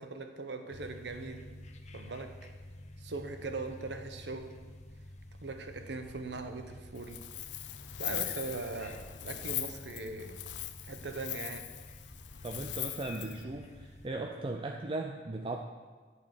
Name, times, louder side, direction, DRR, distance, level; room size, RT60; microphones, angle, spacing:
voice 1, 0.0-1.5 1.9-2.4 3.0-4.5 5.4-7.3 8.0-10.4 10.8-11.7, right 3 dB, 70° right, 6 dB, 1.0 m, -40 dB
sound 1, 0.7-14.1, left 1 dB, 40° left, 0.9 m, -50 dB
Wind, 6.9-13.4, left 13 dB, 80° left, 0.6 m, -40 dB
voice 2, 12.4-15.6, right 2 dB, 30° right, 3 dB, 0.5 m, -37 dB
12.0 x 4.7 x 8.3 m, 1.4 s
head